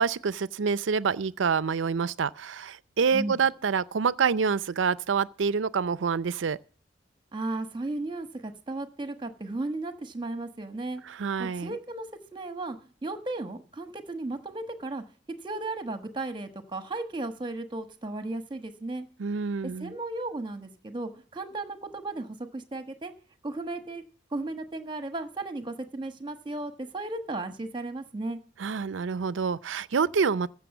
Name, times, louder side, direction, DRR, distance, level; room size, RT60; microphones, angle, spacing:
voice 1, 0.0-6.6 11.0-11.7 19.2-19.9 28.6-30.5, right 5 dB, 85° right, 0.5 m, -27 dB
voice 2, 7.3-11.0 11.4-12.1 12.3-12.8 13.0-15.0 15.4-19.1 19.8-23.1 23.4-24.0 24.3-28.4, right 2 dB, 25° right, 1.2 m, -35 dB
15.0 x 6.1 x 7.0 m
head